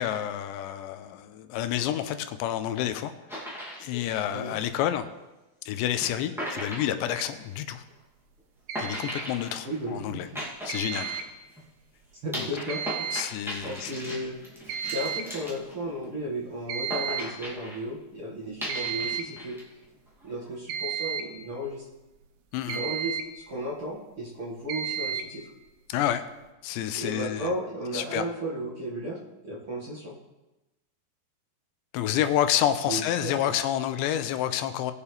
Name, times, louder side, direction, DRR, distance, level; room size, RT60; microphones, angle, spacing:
voice 1, 0.0-3.1 3.8-5.1 5.7-7.8 8.8-10.3 10.6-11.1 12.4-12.5 13.1-14.0 22.5-22.8 25.9-26.2 26.6-27.5 27.9-28.3 31.9-34.9, left 11 dB, 85° left, 10 dB, 2.9 m, -29 dB
sound 1, 3.3-5.1 6.0-6.1 6.4-7.7 8.7-11.6 12.3-16.3 16.9-17.8 18.6-19.6 19.9-20.5, equal, ahead, 1.0 m, -38 dB
sound 2, 7.1-7.3 8.7-9.3 10.7-11.3 12.7-13.3 13.6-13.7 14.3-14.4 14.7-15.3 16.7-17.3 18.7-19.4 20.7-21.4 22.7-23.4 24.7-25.4, right 8 dB, 75° right, 2.8 m, -33 dB
voice 2, 9.6-10.3 12.2-12.8 13.6-14.4 14.9-19.6 20.2-21.8 22.7-23.1 23.5-25.5 26.9-29.2 29.4-30.2 32.8-33.5, right 1 dB, 45° right, -6 dB, 1.9 m, -34 dB
21.0 x 7.2 x 3.4 m, 1.0 s
omnidirectional pair, 5.0 m